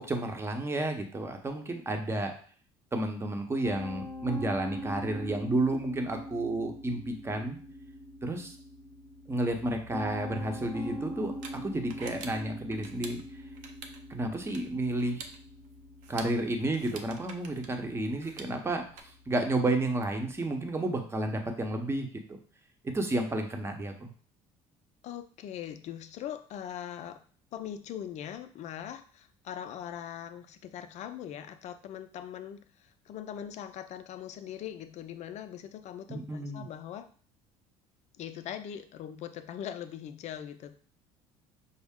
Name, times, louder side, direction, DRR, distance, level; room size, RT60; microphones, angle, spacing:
voice 1, 0.0-2.3 2.9-7.6 8.2-8.5 9.3-13.2 14.1-15.3 16.1-22.1 22.8-24.1 36.1-36.6, right 2 dB, 20° right, 4 dB, 0.8 m, -31 dB
Piano, 3.6-20.8, equal, 15° left, 0.9 m, -43 dB
sound 1, 11.2-19.0, right 4 dB, 70° right, 0.6 m, -49 dB
voice 2, 25.0-27.2 27.5-37.1 38.2-40.7, left 10 dB, 55° left, 9 dB, 0.5 m, -41 dB
5.4 x 2.0 x 3.6 m, 0.44 s
supercardioid pair, 95°, 14 cm